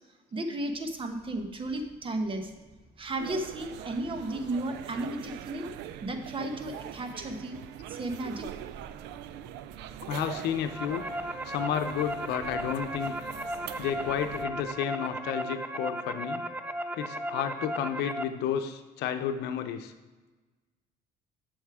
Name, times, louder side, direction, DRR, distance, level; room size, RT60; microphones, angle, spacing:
voice 1, 0.3-2.6 3.0-5.7 6.0-7.6 7.9-8.5, right 1 dB, 30° right, 6 dB, 1.1 m, -34 dB
sound 1, 0.6-14.7, left 1 dB, 10° left, 1.4 m, -56 dB
sound 2, 3.2-14.5, right 11 dB, 90° right, 0.4 m, -43 dB
voice 2, 10.0-11.1 11.5-13.1 13.8-16.4 17.0-19.9, left 9 dB, 80° left, 8 dB, 0.7 m, -31 dB
sound 3, 10.5-18.2, right 1 dB, 10° right, 0.5 m, -36 dB
8.0 x 6.4 x 4.9 m, 1.2 s
cardioid pair, 110°, 17 cm